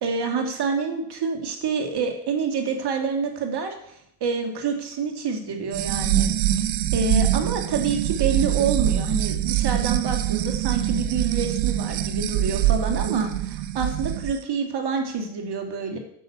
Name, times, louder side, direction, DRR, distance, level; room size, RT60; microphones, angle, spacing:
voice 1, 0.0-3.7 4.2-6.6 6.9-16.0, right 5 dB, 55° right, 4 dB, 2.4 m, -27 dB
sound 1, 5.7-14.3, right 13 dB, 85° right, 0.8 m, -24 dB
9.5 x 6.5 x 5.8 m, 0.71 s
supercardioid pair, 65°, 47 cm